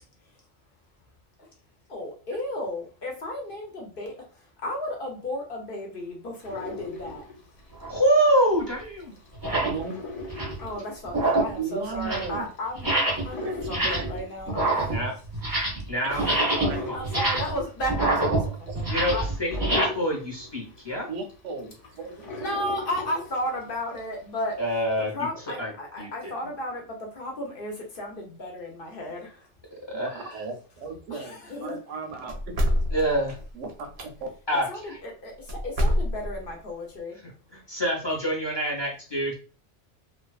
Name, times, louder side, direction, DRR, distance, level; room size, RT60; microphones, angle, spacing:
voice 1, 1.9-7.3 10.6-12.9 13.2-15.0 16.1-16.3 16.9-18.8 19.1-19.2 22.4-24.6 25.1-29.5 31.1-31.8 34.7-37.2, left 1 dB, 55° left, 0 dB, 0.8 m, -34 dB
sound 1, 6.4-8.6 9.0-24.1 24.5-25.1, left 2 dB, 90° left, 1.1 m, -40 dB
sound 2, 7.8-8.0 8.7-8.8 9.3-9.8 10.2-10.6 11.0-11.6 11.9-12.4 12.8-13.3 13.6-14.2 14.5-15.9 16.1-19.8, right 2 dB, 25° right, 0.6 m, -26 dB
voice 2, 7.9-9.1 14.9-15.1 15.9-16.4 16.7-17.0 18.9-21.1 24.6-25.1 25.6-25.7 26.0-26.1 29.9-30.2 32.9-33.3 34.5-35.0 37.5-39.3, equal, 25° left, -2 dB, 0.7 m, -26 dB
voice 3, 9.6-10.0 11.6-12.5 13.4-14.1 16.0-17.0 18.7-18.8 21.1-22.3 29.9-32.5 33.5-33.9 34.2-34.3, right 4 dB, 85° right, 6 dB, 0.9 m, -35 dB
sound 3, 32.3-34.1 35.5-36.5, left 1 dB, 60° right, 0.7 m, -26 dB
2.5 x 2.3 x 2.3 m, 0.37 s
omnidirectional pair, 1.2 m